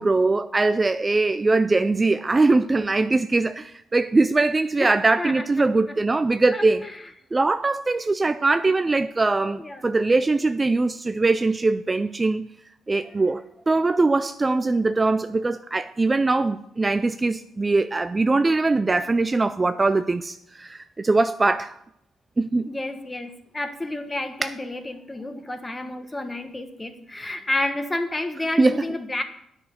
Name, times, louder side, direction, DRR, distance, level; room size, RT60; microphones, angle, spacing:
voice 1, 0.0-6.8 7.3-12.5 12.9-21.8 22.4-22.7 24.4-24.5 28.6-28.9, right 3 dB, 25° right, 0.4 m, -21 dB
voice 2, 6.5-7.0 9.5-9.8 22.6-29.2, left 1 dB, 15° left, 1.4 m, -30 dB
9.8 x 6.2 x 7.8 m
cardioid pair, 90°, 0 cm